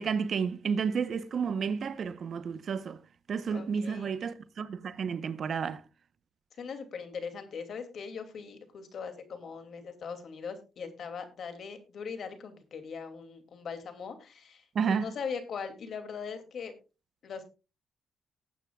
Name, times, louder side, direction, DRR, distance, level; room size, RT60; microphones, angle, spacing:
voice 1, 0.0-3.0 3.3-5.8 14.7-15.1, right 6 dB, 55° right, 0.9 m, -31 dB
voice 2, 3.5-4.1 6.5-16.7 17.2-17.4, left 6 dB, 60° left, 2.6 m, -40 dB
19.0 x 9.2 x 2.4 m
cardioid pair, 90°, 0 cm